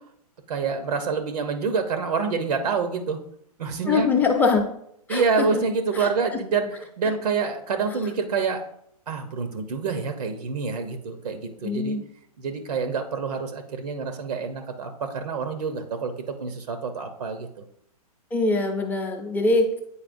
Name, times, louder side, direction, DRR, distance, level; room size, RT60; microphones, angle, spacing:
voice 1, 0.5-3.2 3.6-4.1 5.1-6.7 7.0-8.6 9.1-12.0 12.4-17.6, right 5 dB, 85° right, 7 dB, 0.9 m, -27 dB
voice 2, 3.9-4.7 5.1-5.6 5.9-6.1 11.6-12.0 18.3-19.7, left 3 dB, 10° left, 3 dB, 0.6 m, -23 dB
8.7 x 4.2 x 2.6 m, 0.72 s
hypercardioid pair, 145°, 20 cm